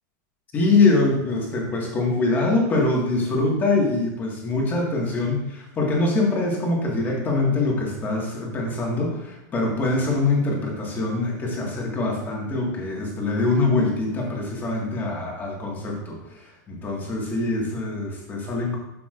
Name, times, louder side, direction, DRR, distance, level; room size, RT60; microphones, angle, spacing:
voice 1, 0.5-16.2 16.7-18.8, left 3 dB, 20° left, -2 dB, 1.9 m, -23 dB
12.0 x 5.9 x 2.6 m, 0.95 s
supercardioid pair, 160°, 10 cm